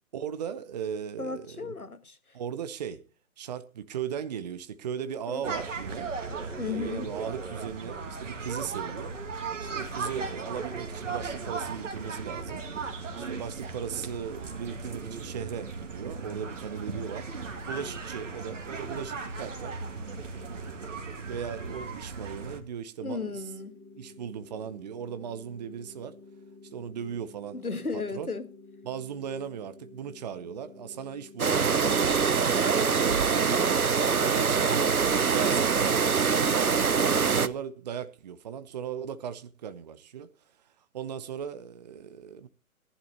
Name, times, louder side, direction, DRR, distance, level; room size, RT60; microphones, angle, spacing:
voice 1, 0.1-1.7 2.3-3.0 3.4-6.1 6.6-9.2 9.7-12.7 13.2-17.3 17.7-19.8 20.3-23.4 24.0-26.2 26.7-27.6 27.9-28.3 28.8-32.0 32.5-33.5 34.0-40.3 40.9-42.5, right 8 dB, 30° right, 0.8 m, -37 dB
voice 2, 1.2-2.2 5.3-5.6 6.6-7.1 23.0-23.8 27.5-28.5, left 4 dB, 85° left, 1.7 m, -35 dB
sound 1, 5.4-22.6, right 4 dB, 60° right, 2.4 m, -37 dB
sound 2, 23.1-33.1, left 3 dB, 5° left, 1.8 m, -51 dB
sound 3, 31.4-37.5, right 5 dB, 80° right, 0.8 m, -24 dB
18.0 x 11.0 x 2.9 m
figure-of-eight pair, 130°, 43 cm